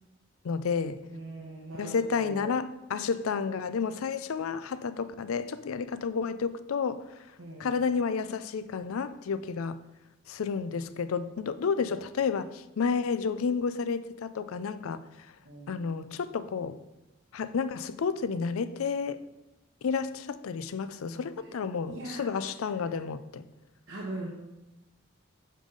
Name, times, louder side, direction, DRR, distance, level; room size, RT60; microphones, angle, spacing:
voice 1, 0.4-1.1 1.8-7.2 7.6-9.8 10.3-15.0 15.7-16.8 17.3-19.2 19.8-23.4, left 5 dB, 85° left, 0.4 m, -31 dB
voice 2, 1.1-2.5 7.4-7.7 15.4-15.9 21.1-21.5 21.9-22.2 23.9-24.3, right 2 dB, 85° right, 1.1 m, -41 dB
8.3 x 5.4 x 3.9 m
head